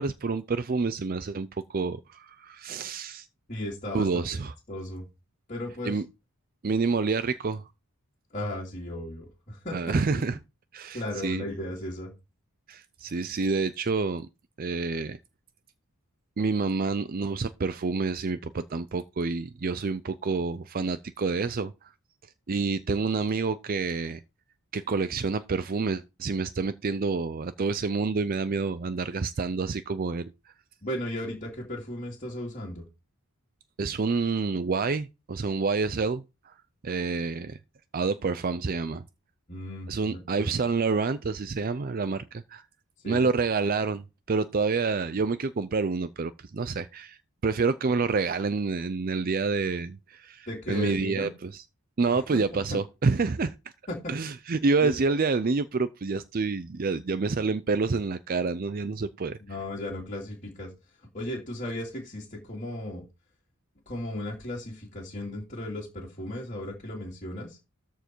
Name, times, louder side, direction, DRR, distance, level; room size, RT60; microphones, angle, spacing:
voice 1, 0.0-3.3 3.9-4.5 5.8-6.1 6.6-7.6 9.7-10.4 10.7-11.4 12.7-14.3 14.6-15.2 16.4-21.9 22.5-24.2 24.7-30.3 33.8-36.5 36.8-37.6 37.9-39.0 39.9-42.6 43.1-51.6 52.0-53.5 54.1-59.6, right 4 dB, 40° right, 0.5 m, -28 dB
voice 2, 3.5-4.2 4.7-5.1 5.5-5.9 8.3-10.2 10.9-12.1 30.8-32.8 39.5-40.5 43.0-43.3 50.5-51.3 52.1-52.4 52.7-52.8 53.9-54.0 54.8-54.9 59.5-60.7 61.1-63.0 63.9-67.6, left 1 dB, 35° left, 2.6 m, -35 dB
13.5 x 4.6 x 4.5 m
head